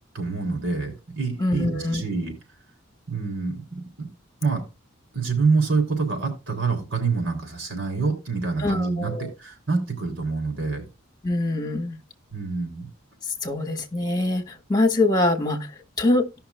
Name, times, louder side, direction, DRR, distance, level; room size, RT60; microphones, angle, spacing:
voice 1, 0.1-2.3 3.1-4.1 4.4-4.6 5.1-10.8 12.3-12.9, right 4 dB, 70° right, 3.9 m, -26 dB
voice 2, 1.4-2.0 8.6-9.3 11.2-12.0 13.4-15.7 16.0-16.3, left 2 dB, 20° left, 1.6 m, -23 dB
17.5 x 5.8 x 2.2 m
head